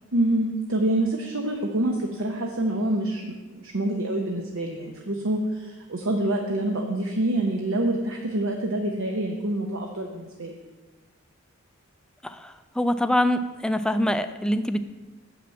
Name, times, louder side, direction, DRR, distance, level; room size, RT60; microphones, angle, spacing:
voice 1, 0.1-10.6, right 1 dB, 65° right, 2 dB, 0.8 m, -26 dB
voice 2, 12.2-14.8, left 1 dB, 5° left, 10 dB, 0.3 m, -24 dB
7.0 x 5.9 x 7.3 m, 1.2 s
head